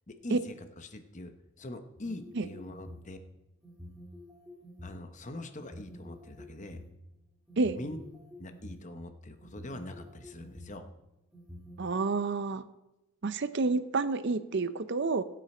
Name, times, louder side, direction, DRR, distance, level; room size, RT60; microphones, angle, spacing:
voice 1, 0.1-1.3 1.6-3.2 4.8-6.8 7.7-8.0 8.4-10.9, left 1 dB, 35° left, 8 dB, 0.9 m, -43 dB
sound 1, 2.0-3.1 3.6-4.9 5.5-6.8 7.5-8.9 9.4-10.8 11.3-11.9, left 1 dB, 5° right, 3.1 m, -48 dB
voice 2, 11.8-12.6 13.2-15.2, right 3 dB, 50° right, 13 dB, 0.5 m, -29 dB
17.5 x 7.6 x 4.4 m, 0.95 s
head